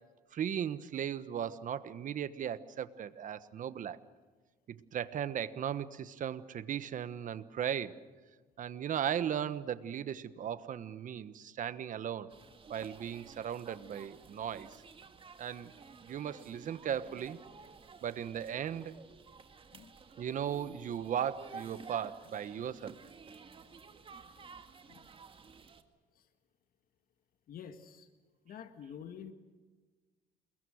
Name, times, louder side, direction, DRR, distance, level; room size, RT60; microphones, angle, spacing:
voice 1, 0.3-4.0 4.7-8.0 8.6-12.3 12.7-14.8 15.4-15.7 16.0-17.4 18.0-18.9 20.2-23.0, right 9 dB, 50° right, 13 dB, 1.3 m, -37 dB
sound 1, 12.3-25.8, right 5 dB, 30° right, 1.9 m, -53 dB
voice 2, 27.5-28.1 28.5-29.3, left 8 dB, 60° left, 8 dB, 1.8 m, -48 dB
28.5 x 22.0 x 6.5 m, 1.4 s
cardioid pair, 110°, 17 cm